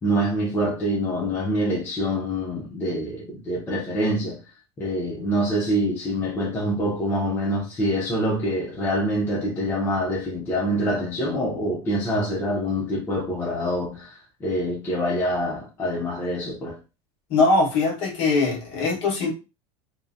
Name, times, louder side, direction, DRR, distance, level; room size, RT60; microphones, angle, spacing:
voice 1, 0.0-4.4 4.8-16.8, equal, 15° left, 0.4 m, -25 dB
voice 2, 17.3-19.3, left 3 dB, 40° left, 1.0 m, -21 dB
2.6 x 2.1 x 2.4 m
supercardioid pair, 165°, 15 cm